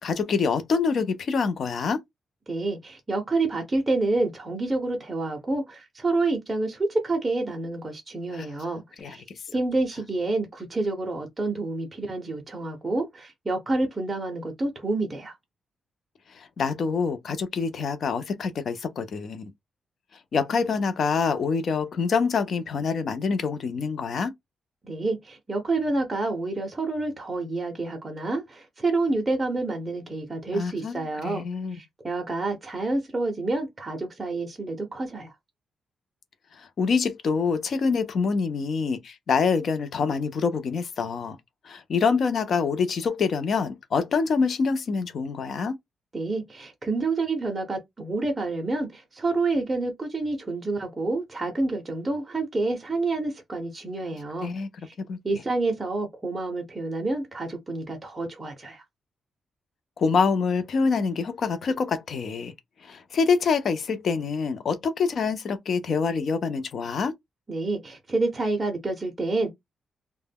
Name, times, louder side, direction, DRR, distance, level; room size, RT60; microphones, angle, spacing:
voice 1, 0.0-2.0 8.3-8.5 9.0-9.2 16.3-19.5 20.3-24.3 30.5-31.8 36.6-41.4 41.6-45.8 54.4-54.7 55.1-55.2 60.0-62.5 62.8-67.1, left 5 dB, 45° left, 0.5 m, -26 dB
voice 2, 2.5-9.2 9.5-15.3 24.8-31.4 31.7-35.3 46.1-54.5 54.9-55.0 55.2-58.8 67.5-69.5, right 2 dB, 15° right, 0.6 m, -28 dB
2.1 x 2.1 x 3.4 m
wide cardioid pair, 170°, 0 cm